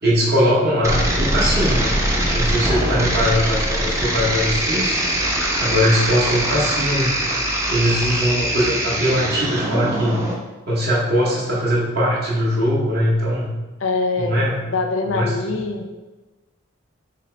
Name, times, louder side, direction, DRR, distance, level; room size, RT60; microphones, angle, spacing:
voice 1, 0.0-1.9 2.3-5.3 5.6-7.2 7.7-10.2 10.7-13.5 14.2-14.7 15.1-15.3, equal, 50° right, -6 dB, 0.9 m, -21 dB
sound 1, 0.8-10.3, right 1 dB, 15° right, 0.5 m, -22 dB
voice 2, 13.8-14.4 14.7-15.9, left 3 dB, 70° left, 4 dB, 0.5 m, -23 dB
4.2 x 2.8 x 3.2 m, 1.2 s
head